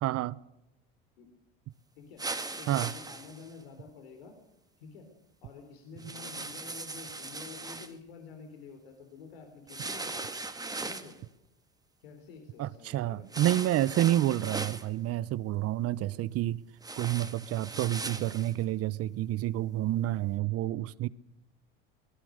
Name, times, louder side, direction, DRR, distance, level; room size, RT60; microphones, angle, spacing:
voice 1, 0.0-0.4 2.7-2.9 12.6-16.6 17.0-21.1, right 14 dB, 55° right, 1.0 m, -29 dB
voice 2, 2.0-2.3 2.6-4.3 4.8-5.1 5.4-11.2 12.0-13.3 13.8-14.2 16.0-16.2, left 5 dB, 90° left, 4.0 m, -49 dB
sound 1, 2.2-3.5 6.0-7.9 9.7-11.2 13.3-14.9 16.8-18.5, right 3 dB, 15° right, 2.0 m, -39 dB
24.5 x 19.0 x 6.6 m
supercardioid pair, 90°, 29 cm